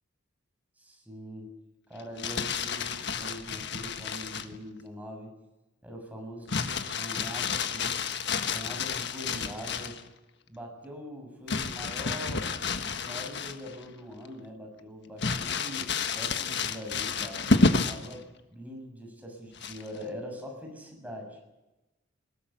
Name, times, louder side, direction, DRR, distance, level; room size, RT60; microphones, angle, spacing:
voice 1, 0.8-1.5 1.9-5.3 5.8-8.0 8.5-10.0 10.5-12.5 12.8-17.5 17.8-21.4, equal, 10° right, 1 dB, 7.0 m, -42 dB
Crumpling crinkling, 2.0-4.6 6.5-10.0 11.5-13.8 14.3-14.4 15.2-18.1 19.6-20.0, left 4 dB, 60° left, 1.5 m, -30 dB
21.0 x 18.0 x 9.2 m, 0.99 s
head